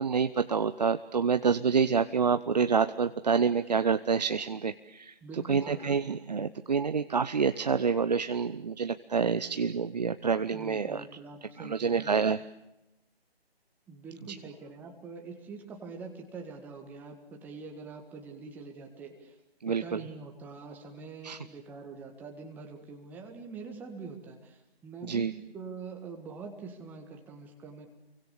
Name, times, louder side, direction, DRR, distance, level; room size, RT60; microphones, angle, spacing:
voice 1, 0.0-5.1 5.5-11.0 11.6-12.4 14.3-14.4 19.6-20.0 21.2-21.4 25.0-25.3, right 6 dB, 40° right, 11 dB, 0.9 m, -27 dB
voice 2, 5.2-6.1 10.5-12.1 13.9-19.4 19.7-27.9, right 4 dB, 5° right, 3 dB, 1.8 m, -44 dB
29.5 x 24.0 x 7.0 m, 0.90 s
figure-of-eight pair, 150°, 31 cm